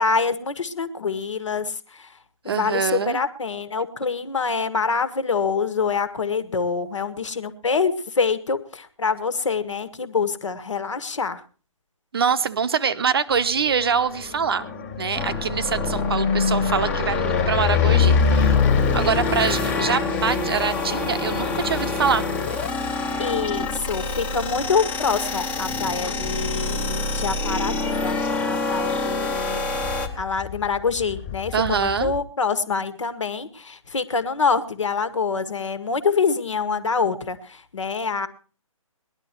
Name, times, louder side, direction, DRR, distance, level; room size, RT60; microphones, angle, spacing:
voice 1, 0.0-2.2 2.4-11.4 23.2-29.7 30.2-38.3, left 5 dB, 60° left, 13 dB, 1.7 m, -25 dB
voice 2, 2.5-3.2 12.1-14.7 15.0-18.5 18.9-22.3 31.5-32.1, right 6 dB, 45° right, 12 dB, 0.9 m, -24 dB
sound 1, 13.6-27.6 28.0-28.5 28.7-28.8 29.1-32.2, left 7 dB, 25° left, 1.9 m, -26 dB
sound 2, 15.2-30.1, left 2 dB, 10° left, 1.0 m, -27 dB
19.5 x 11.5 x 4.5 m, 0.38 s
figure-of-eight pair, 145°, 18 cm